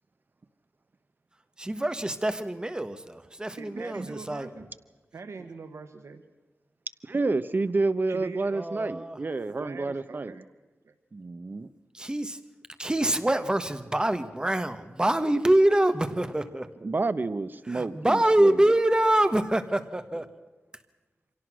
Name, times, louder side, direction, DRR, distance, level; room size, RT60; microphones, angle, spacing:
voice 1, 1.6-4.5 8.5-9.2 11.9-12.4 12.8-16.6 17.7-20.3, right 1 dB, 20° right, 10 dB, 1.4 m, -25 dB
voice 2, 3.6-4.7 5.1-6.2 8.1-8.5 9.6-10.5 10.8-10.9, right 4 dB, 85° right, 7 dB, 1.3 m, -42 dB
voice 3, 7.0-10.3 11.1-11.7 16.8-18.6, right 3 dB, 45° right, 14 dB, 0.9 m, -29 dB
25.5 x 17.5 x 6.2 m, 1.2 s
wide cardioid pair, 115°, 5 cm